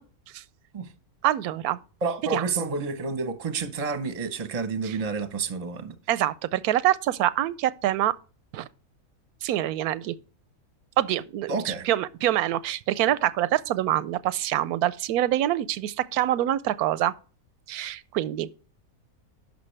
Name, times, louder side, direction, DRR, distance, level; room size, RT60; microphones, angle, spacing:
voice 1, 1.2-1.8 2.3-2.4 4.9-5.0 6.1-8.1 8.5-8.7 9.4-10.1 11.0-11.6 11.9-17.1 17.7-18.5, right 13 dB, 90° right, 1.1 m, -25 dB
voice 2, 2.0-5.9 11.5-11.9, right 4 dB, 30° right, 0.9 m, -29 dB
11.5 x 6.0 x 3.2 m
omnidirectional pair, 1.5 m